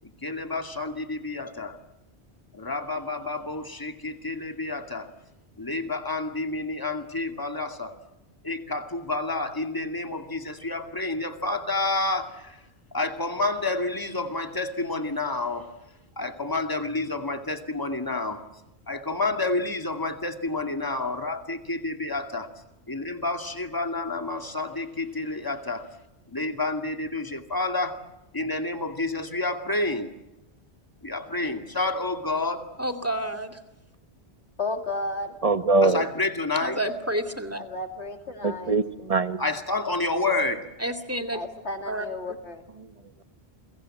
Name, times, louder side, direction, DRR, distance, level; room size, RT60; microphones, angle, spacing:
voice 1, 0.0-1.8 2.5-5.1 5.6-7.9 8.4-12.6 12.9-15.7 16.2-18.4 18.9-22.5 22.9-25.8 26.3-28.0 28.3-30.1 31.0-32.7 35.8-36.8 39.4-40.6, left 2 dB, 20° left, 6 dB, 2.3 m, -29 dB
voice 2, 32.8-33.6 36.6-37.6 40.8-41.4 41.9-42.1, right 1 dB, 15° right, 10 dB, 2.3 m, -29 dB
voice 3, 34.6-35.3 37.5-38.8 41.3-42.6, left 2 dB, 90° left, 5 dB, 3.0 m, -33 dB
voice 4, 35.4-36.0 38.4-39.4, right 3 dB, 35° right, 11 dB, 1.3 m, -22 dB
29.5 x 23.0 x 7.8 m, 0.92 s
omnidirectional pair, 1.1 m